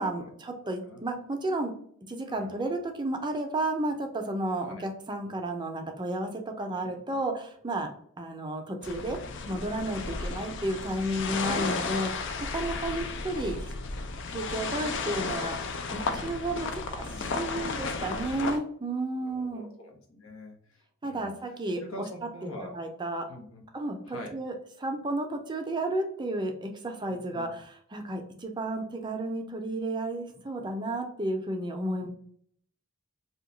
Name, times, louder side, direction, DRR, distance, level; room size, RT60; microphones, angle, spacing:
voice 1, 0.0-1.7 2.1-7.9 8.2-13.7 14.3-19.7 21.0-22.1 22.4-23.2 23.7-32.1, right 1 dB, 20° right, 4 dB, 0.5 m, -32 dB
voice 2, 2.3-2.7 4.6-4.8 6.9-7.0 10.5-10.6 12.9-13.1 17.1-17.8 19.1-21.3 21.8-22.7 23.3-23.6 24.1-24.3 27.1-27.5, left 1 dB, 90° left, 1 dB, 0.9 m, -45 dB
sound 1, 8.8-18.6, left 4 dB, 60° left, 0.4 m, -33 dB
2.8 x 2.2 x 3.7 m, 0.63 s
head